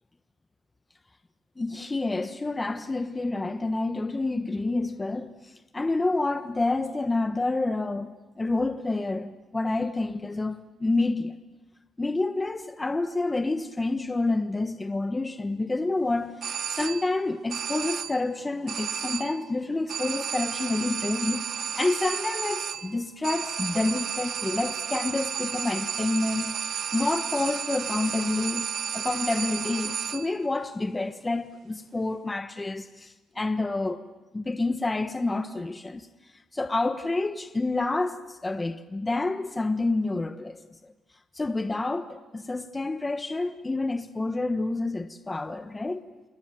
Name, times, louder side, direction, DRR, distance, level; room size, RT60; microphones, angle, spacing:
voice 1, 1.6-11.4 12.0-28.7 28.9-34.0 34.3-40.9 41.3-46.0, left 2 dB, 20° left, 1.2 m, -28 dB
sound 1, 16.4-17.2 17.5-18.3 18.7-19.5 19.9-30.4, right 8 dB, 60° right, 0.9 m, -32 dB
28.5 x 21.5 x 9.0 m
cardioid pair, 90°, 0 cm